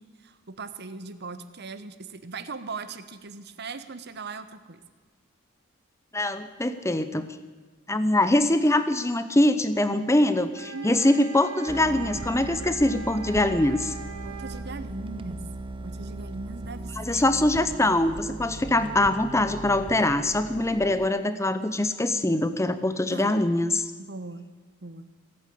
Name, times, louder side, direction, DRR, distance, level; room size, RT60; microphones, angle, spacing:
voice 1, 0.0-4.8 10.7-11.0 14.2-15.5 15.8-17.3 23.1-23.4 24.0-24.5 24.8-25.1, right 3 dB, 50° right, 12 dB, 0.9 m, -39 dB
voice 2, 6.1-7.3 7.9-13.9 17.0-23.9, left 1 dB, 15° left, 12 dB, 0.7 m, -23 dB
sound 1, 10.5-14.7, right 7 dB, 75° right, 1.2 m, -41 dB
sound 2, 11.7-21.1, right 2 dB, 25° right, 0.6 m, -38 dB
18.0 x 8.7 x 8.4 m, 1.5 s
head